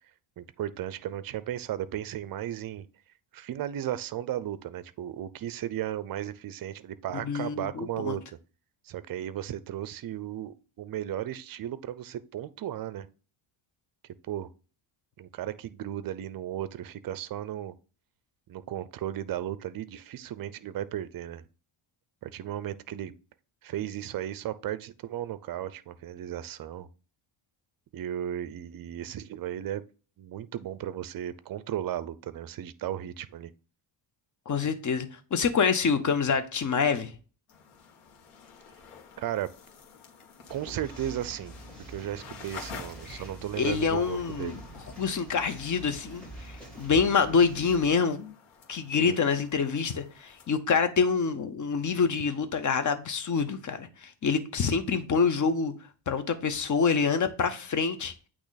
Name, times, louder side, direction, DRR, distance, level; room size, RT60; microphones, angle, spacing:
voice 1, 0.4-2.9 3.3-8.4 8.8-13.1 14.3-14.5 15.2-17.7 18.5-21.5 22.2-23.1 23.6-26.9 27.9-29.8 30.2-33.5 39.2-39.5 40.5-41.6 41.9-44.6 48.9-49.2, right 11 dB, 45° right, 0.5 m, -35 dB
voice 2, 7.2-8.2 34.5-37.1 43.1-43.2 43.6-44.6 45.0-48.3 48.7-55.7 56.1-58.1, left 5 dB, 35° left, 0.9 m, -26 dB
sound 1, 37.5-50.5, left 6 dB, 85° left, 1.6 m, -50 dB
sound 2, 40.5-47.9, right 1 dB, ahead, 3.1 m, -45 dB
8.5 x 3.1 x 4.0 m
cardioid pair, 120°, 50 cm